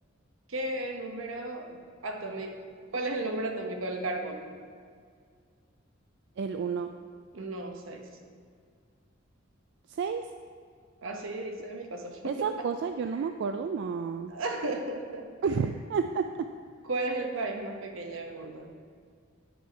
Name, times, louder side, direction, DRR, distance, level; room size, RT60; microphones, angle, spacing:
voice 1, 0.5-4.4 7.3-8.1 11.0-12.5 14.3-15.6 16.9-18.7, right 2 dB, 80° right, 4 dB, 0.9 m, -34 dB
voice 2, 6.4-6.9 10.0-10.2 12.2-14.3 15.4-16.2, right 5 dB, 60° right, 7 dB, 0.3 m, -30 dB
9.7 x 5.2 x 4.5 m, 2.1 s
head